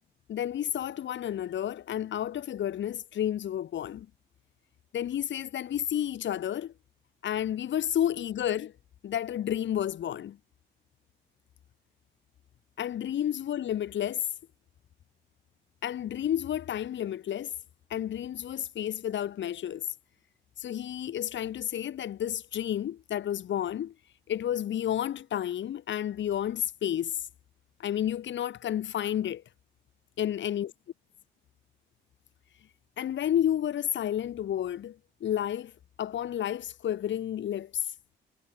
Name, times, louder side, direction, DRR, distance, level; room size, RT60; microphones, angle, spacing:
voice 1, 0.3-4.1 4.9-6.7 7.2-8.7 9.0-10.4 12.8-14.3 15.8-17.5 17.9-19.9 20.6-23.9 24.3-27.2 27.8-29.4 30.2-30.7 33.0-35.7 36.0-37.8, left 10 dB, 70° left, 5.2 m, -31 dB
cardioid pair, 90°, 20 cm